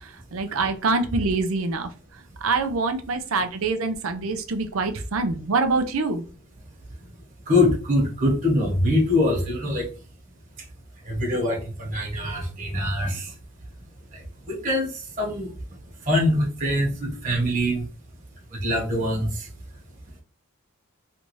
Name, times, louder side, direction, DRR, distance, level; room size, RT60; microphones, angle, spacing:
voice 1, 0.3-1.9 2.4-6.2, right 3 dB, 90° right, 7 dB, 0.6 m, -25 dB
voice 2, 7.5-9.9 11.0-13.3 14.1-15.5 16.0-17.9 18.5-19.5, left 1 dB, 40° right, -1 dB, 1.4 m, -24 dB
3.3 x 2.6 x 3.1 m, 0.36 s
head